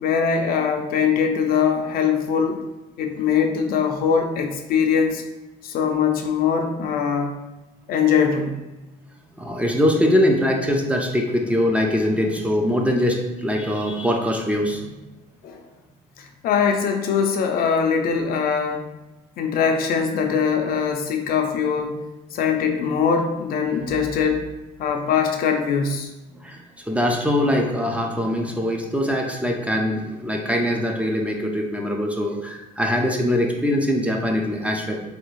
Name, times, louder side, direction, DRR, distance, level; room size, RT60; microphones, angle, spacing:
voice 1, 0.0-2.6 3.0-5.2 5.6-7.4 7.9-8.6 15.4-15.6 16.2-18.9 19.4-22.0 22.3-24.5 24.8-26.1, left 6 dB, 60° left, 5 dB, 0.4 m, -22 dB
voice 2, 9.4-14.9 22.3-22.4 26.3-26.6 26.9-35.0, equal, 10° right, 1 dB, 0.4 m, -22 dB
3.4 x 2.3 x 3.1 m, 1.1 s
cardioid pair, 110°, 17 cm